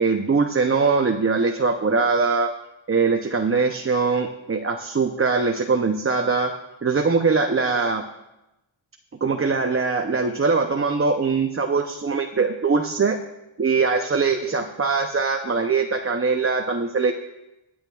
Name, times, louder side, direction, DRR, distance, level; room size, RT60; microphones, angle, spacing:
voice 1, 0.0-2.5 2.9-6.5 6.8-8.1 9.2-13.2 13.6-17.1, right 4 dB, 25° right, 4 dB, 0.7 m, -22 dB
24.5 x 8.7 x 2.4 m, 0.93 s
wide cardioid pair, 95°, 49 cm